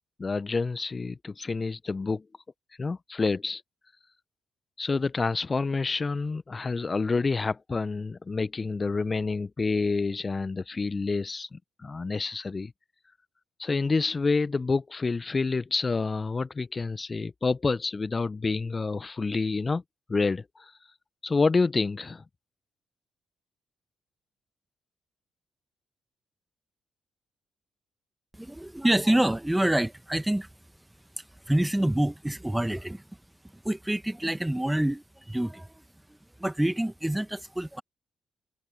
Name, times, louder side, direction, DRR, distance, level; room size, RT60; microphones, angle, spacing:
voice 1, 0.2-2.2 2.8-3.6 4.8-12.7 13.6-19.8 20.1-20.7 21.2-22.2, left 4 dB, 35° left, 0.9 m, -28 dB
voice 2, 28.3-30.5 31.2-33.0 33.5-35.8 36.1-37.8, right 1 dB, 10° right, 1.4 m, -27 dB
hypercardioid pair, 40°, 0 cm